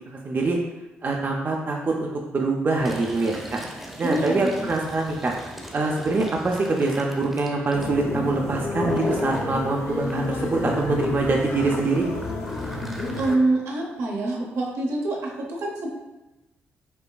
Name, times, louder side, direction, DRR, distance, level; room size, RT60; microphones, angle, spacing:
voice 1, 0.1-0.6 1.0-3.6 4.0-5.3 5.7-12.1, right 3 dB, 40° right, 0 dB, 0.5 m, -24 dB
Fill (with liquid), 2.8-9.5 10.0-13.3, equal, ahead, 0.7 m, -38 dB
voice 2, 4.0-4.7 12.7-12.8 13.2-15.9, right 2 dB, 75° right, -1 dB, 0.8 m, -26 dB
sound 1, 7.7-13.4, left 3 dB, 65° left, 0.5 m, -30 dB
5.4 x 2.2 x 2.3 m, 1.0 s
supercardioid pair, 55°, 5 cm